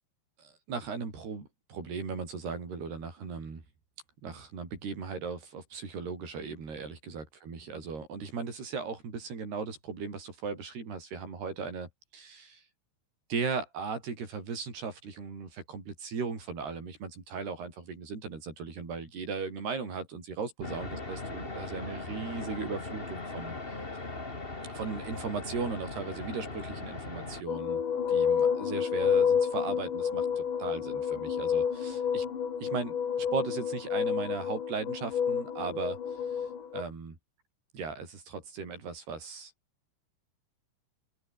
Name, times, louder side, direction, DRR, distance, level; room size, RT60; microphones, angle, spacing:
voice 1, 0.4-3.6 4.2-12.6 13.3-23.6 24.7-27.8 28.1-32.2 32.6-33.0 33.3-36.0 36.3-36.4 36.7-37.2 37.7-39.5, right 5 dB, 50° right, 8.6 m, -37 dB
sound 1, 20.6-27.4, left 3 dB, 30° left, 1.0 m, -39 dB
sound 2, 27.5-36.8, left 7 dB, 60° left, 6.3 m, -29 dB
open air
omnidirectional pair, 6.0 m